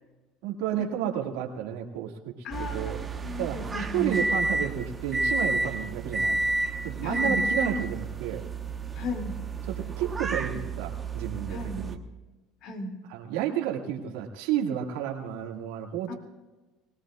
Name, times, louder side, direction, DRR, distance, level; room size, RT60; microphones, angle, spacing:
voice 1, 0.4-2.3 2.6-3.0 3.4-3.6 3.9-6.4 6.8-8.4 9.6-12.0 13.1-16.1, right 10 dB, 85° right, 0 dB, 2.2 m, -31 dB
voice 2, 2.4-4.2 7.0-7.4 8.9-9.4 11.5-11.8 12.6-12.9 16.1-16.2, left 2 dB, 60° left, 3 dB, 2.6 m, -35 dB
sound 1, 2.5-12.0, right 3 dB, 20° right, 1.2 m, -30 dB
22.5 x 18.0 x 2.5 m, 1.2 s
supercardioid pair, 110°, 0 cm